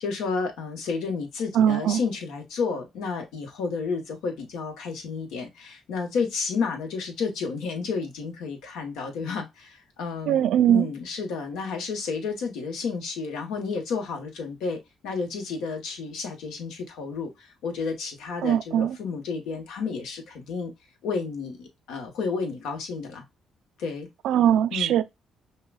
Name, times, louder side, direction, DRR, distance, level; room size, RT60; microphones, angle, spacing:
voice 1, 0.0-10.4 10.7-20.7 21.0-23.2 23.8-24.1 24.7-24.9, left 5 dB, 90° left, 1.2 m, -31 dB
voice 2, 1.5-2.0 10.3-10.9 18.4-19.0 24.2-25.0, right 10 dB, 80° right, 0.3 m, -21 dB
5.7 x 2.3 x 2.3 m
cardioid pair, 90°, 0 cm